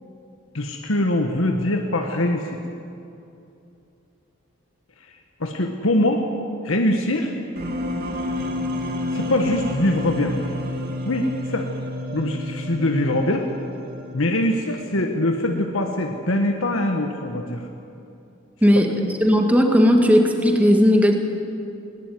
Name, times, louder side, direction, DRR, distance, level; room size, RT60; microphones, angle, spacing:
voice 1, 0.5-2.6 5.4-6.3 6.6-7.3 9.1-10.4 11.0-11.7 12.1-13.5 14.1-17.7, left 1 dB, 80° left, 3 dB, 1.6 m, -23 dB
sound 1, 7.6-14.6, left 1 dB, 45° right, 2.5 m, -30 dB
voice 2, 18.6-21.2, equal, 5° right, 3 dB, 2.1 m, -16 dB
20.5 x 19.5 x 9.4 m, 2.7 s
head